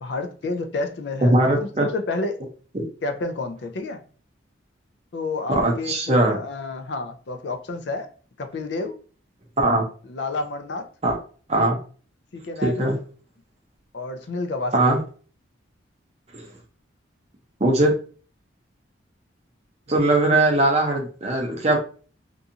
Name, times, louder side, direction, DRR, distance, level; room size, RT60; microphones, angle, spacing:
voice 1, 0.0-1.4 1.8-2.4 3.0-4.0 5.1-8.1 8.4-9.0 10.1-10.9 12.3-12.9 13.9-14.9, left 3 dB, 60° left, 0.4 m, -30 dB
voice 2, 1.3-1.9 2.7-2.9 5.5-6.4 9.6-9.8 11.0-11.2 11.5-11.8 12.6-13.0 14.7-15.0 16.3-16.5 17.6-17.9 19.9-21.8, right 2 dB, 35° right, 0.6 m, -20 dB
2.6 x 2.4 x 2.7 m
head